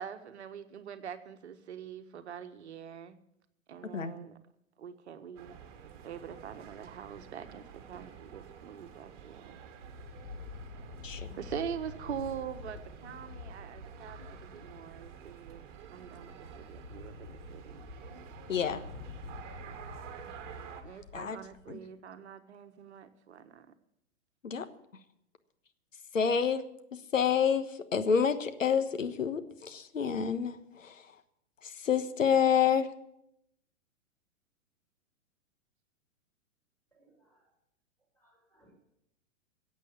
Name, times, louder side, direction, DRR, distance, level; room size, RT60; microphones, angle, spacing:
voice 1, 0.0-3.2 3.7-4.3 4.8-5.6 6.0-9.4 11.4-15.6 15.9-17.8 20.2-20.3 20.8-23.7, right 8 dB, 55° right, 9 dB, 1.4 m, -43 dB
sound 1, 5.4-20.8, right 7 dB, 40° right, 2.0 m, -49 dB
sound 2, 9.8-15.3 15.8-21.7, left 4 dB, 30° left, 4.7 m, -48 dB
voice 2, 18.5-18.8 21.1-21.4 21.7-21.8 24.4-24.7 26.1-26.6 27.1-27.7 27.9-30.6 30.8-30.9 31.8-32.9, left 7 dB, 70° left, 10 dB, 1.4 m, -28 dB
voice 3, 36.9-37.5 38.1-38.7, right 1 dB, 5° left, -2 dB, 6.5 m, -66 dB
15.5 x 8.3 x 8.7 m, 0.79 s
figure-of-eight pair, 110°, 40 cm